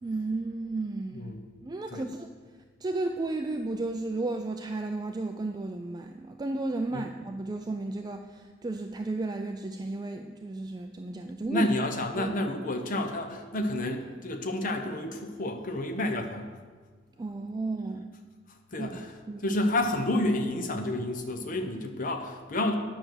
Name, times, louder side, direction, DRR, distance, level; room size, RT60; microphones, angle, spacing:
voice 1, 0.0-1.3 1.6-2.3 2.8-11.7 12.1-12.3 17.2-18.1 18.8-18.9 19.3-19.5, right 2 dB, 20° right, 5 dB, 0.4 m, -33 dB
voice 2, 11.5-16.5 18.7-19.1 19.4-22.7, left 1 dB, 45° left, 5 dB, 0.8 m, -30 dB
10.0 x 6.0 x 6.3 m, 1.5 s
head